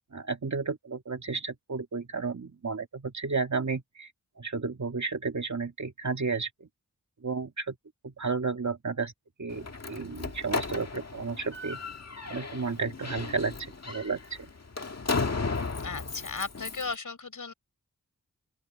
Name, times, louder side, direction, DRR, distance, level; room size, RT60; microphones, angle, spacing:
voice 1, 0.1-4.1 4.4-6.7 7.2-7.8 8.0-9.1 9.4-11.8 12.3-14.2, right 4 dB, 55° right, 2.4 m, -32 dB
Slam, 9.5-16.9, left 4 dB, 50° left, 1.8 m, -35 dB
voice 2, 15.8-17.5, left 4 dB, 65° left, 5.3 m, -36 dB
open air
wide cardioid pair, 85°, 33 cm